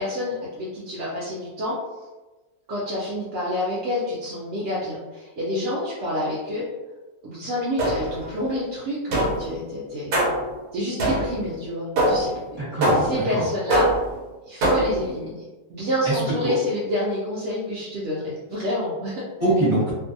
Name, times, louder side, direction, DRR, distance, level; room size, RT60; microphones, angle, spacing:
voice 1, 0.0-1.8 2.7-6.7 7.2-10.2 10.7-12.3 12.9-13.9 14.5-15.4 15.7-19.2, left 1 dB, 65° right, -7 dB, 0.8 m, -28 dB
sound 1, 7.8-8.3 9.1-9.5 10.1-10.5 11.0-11.5 12.0-12.4 12.8-13.3 13.7-14.2 14.6-15.1, right 1 dB, 85° right, 1.2 m, -22 dB
voice 2, 12.6-13.4 16.0-16.5 19.4-19.9, right 1 dB, 30° right, -10 dB, 1.1 m, -23 dB
2.6 x 2.3 x 2.6 m, 1.2 s
omnidirectional pair, 1.6 m